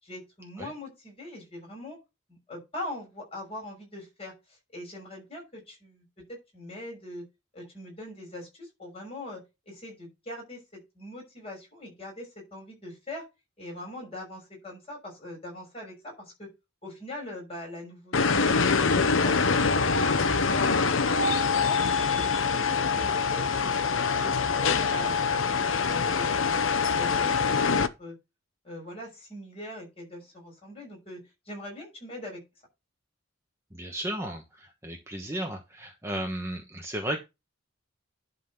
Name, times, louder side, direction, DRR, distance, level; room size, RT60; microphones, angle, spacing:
voice 1, 0.0-2.0 2.3-7.2 7.5-13.2 13.6-16.5 16.8-18.6 18.8-21.8 22.1-23.8 24.1-25.4 25.8-26.3 26.9-28.2 28.6-32.4, left 1 dB, 30° left, 1 dB, 6.0 m, -42 dB
sound 1, 18.1-27.9, left 5 dB, 80° left, 0.9 m, -24 dB
voice 2, 33.7-34.4 34.8-37.2, right 1 dB, 15° right, 2 dB, 1.1 m, -34 dB
11.0 x 4.1 x 5.8 m, 0.24 s
head